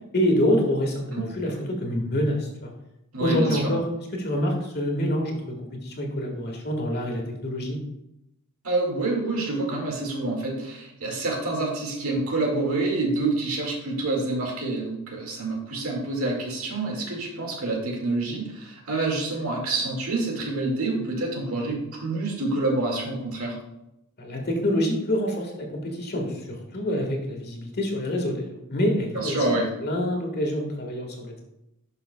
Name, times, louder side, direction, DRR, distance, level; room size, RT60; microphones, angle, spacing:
voice 1, 0.1-1.5 1.8-2.7 3.2-3.8 4.2-7.8 24.2-29.4 29.8-31.4, equal, 50° left, 2 dB, 1.6 m, -26 dB
voice 2, 3.1-3.7 8.6-23.6 29.1-29.7, right 2 dB, 80° right, 0 dB, 2.0 m, -27 dB
11.5 x 5.7 x 2.2 m, 0.87 s
head